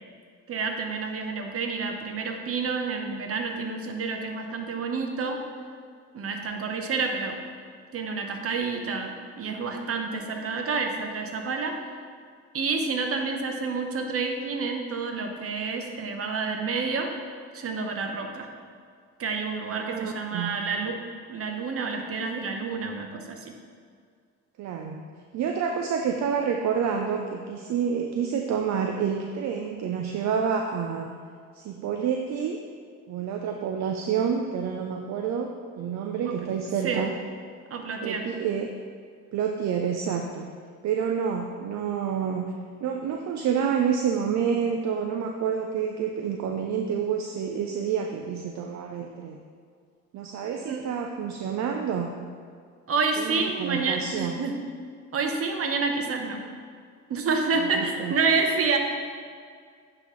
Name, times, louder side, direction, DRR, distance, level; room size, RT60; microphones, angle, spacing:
voice 1, 0.5-5.4 6.1-7.4 7.9-11.7 12.5-17.1 17.5-18.5 19.2-21.0 21.3-23.5 36.2-36.3 36.8-37.1 37.7-38.2 50.7-50.8 52.9-54.6 55.1-56.4 57.1-58.8, right 4 dB, 50° right, 3 dB, 0.9 m, -29 dB
voice 2, 19.7-20.6 24.6-25.0 25.3-31.1 31.5-32.6 33.1-35.5 35.8-37.1 38.0-38.7 39.3-40.5 40.8-42.5 42.8-49.4 50.1-52.1 53.2-54.4 57.6-58.1, right 7 dB, 65° right, 3 dB, 0.5 m, -28 dB
9.5 x 3.9 x 3.1 m, 2.1 s
cardioid pair, 90°, 30 cm